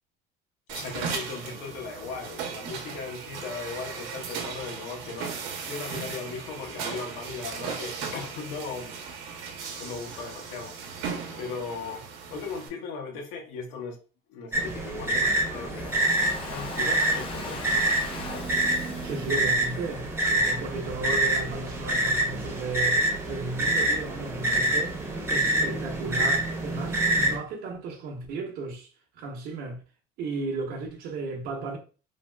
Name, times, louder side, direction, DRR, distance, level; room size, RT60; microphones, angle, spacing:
voice 1, 0.7-9.0 9.8-11.1 11.4-14.0 14.3-16.0 16.5-17.6, left 4 dB, 85° left, 0.8 m, -38 dB
sound 1, 0.7-12.7, right 6 dB, 85° right, 0.8 m, -37 dB
sound 2, 14.5-27.4, right 1 dB, 15° right, 0.7 m, -26 dB
Domestic sounds home sounds, 15.5-20.5, left 4 dB, 30° left, 0.5 m, -40 dB
voice 2, 19.0-25.0 25.3-28.9 29.1-29.8 30.2-31.8, right 3 dB, 55° right, 0.8 m, -34 dB
3.4 x 2.3 x 2.2 m
cardioid pair, 150°, 19 cm